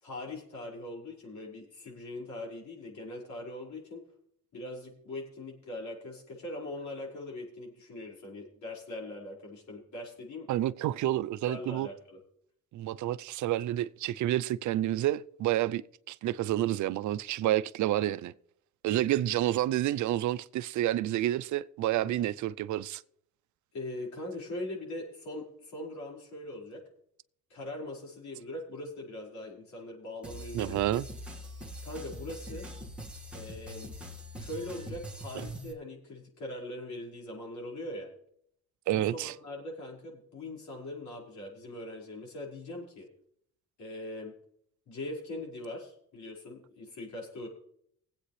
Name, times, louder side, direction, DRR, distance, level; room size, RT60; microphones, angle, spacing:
voice 1, 0.0-4.0 4.5-10.5 11.4-12.2 22.0-22.1 23.7-26.8 27.5-30.8 31.8-32.7 33.3-33.9 34.4-38.1 38.9-43.1 43.8-44.4 44.9-47.5, left 1 dB, 70° left, 5.2 m, -41 dB
voice 2, 10.5-11.9 12.7-18.3 18.8-23.0 30.5-31.1 38.9-39.3, right 13 dB, 75° right, 0.5 m, -29 dB
sound 1, 30.2-35.7, equal, 5° right, 1.9 m, -43 dB
20.0 x 8.4 x 3.3 m
cardioid pair, 90°, 30 cm